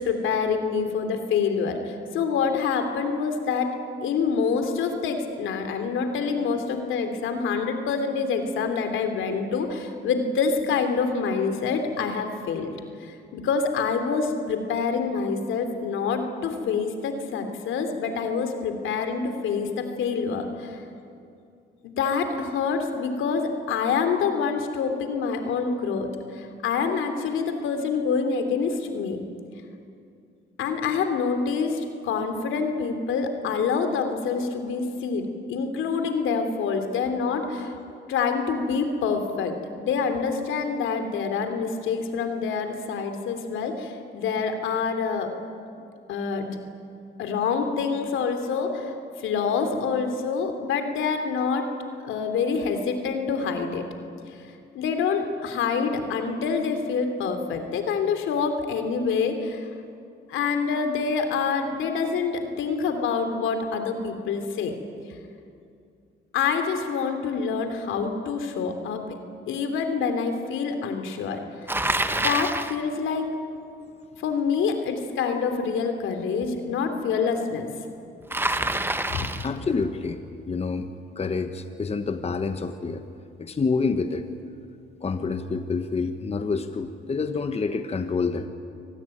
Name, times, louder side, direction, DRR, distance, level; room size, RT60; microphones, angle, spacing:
voice 1, 0.0-3.7 4.0-12.7 13.0-20.8 22.0-29.2 30.6-37.7 38.1-45.3 46.1-46.6 47.2-51.7 52.0-53.9 54.3-54.4 54.7-59.7 60.3-64.7 66.3-69.2 69.5-71.4 72.1-73.3 74.2-77.7 79.1-79.3 79.6-79.7, left 5 dB, 80° left, 6 dB, 3.0 m, -26 dB
Bicycle, 71.7-72.8 78.3-79.6, right 2 dB, 10° right, 1.2 m, -26 dB
voice 2, 79.4-80.9 81.2-83.0 83.4-84.3 85.0-88.5, left 4 dB, 30° left, 8 dB, 1.3 m, -27 dB
25.5 x 19.0 x 9.1 m, 2.5 s
cardioid pair, 90°, 20 cm